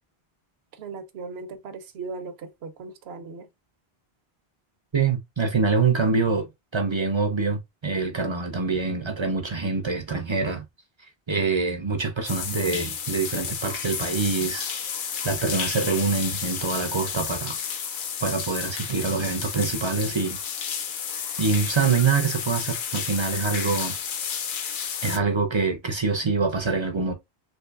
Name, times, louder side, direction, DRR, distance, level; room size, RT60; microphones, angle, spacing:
voice 1, 0.7-3.5, right 4 dB, 80° right, 0.9 m, -38 dB
voice 2, 4.9-6.5 6.7-10.6 11.3-14.7 15.2-17.6 18.2-20.4 21.4-23.9 25.0-27.1, right 4 dB, 40° right, 0.4 m, -25 dB
sound 1, 12.3-25.2, left 7 dB, 60° left, 0.7 m, -31 dB
3.5 x 3.0 x 2.3 m
omnidirectional pair, 1.0 m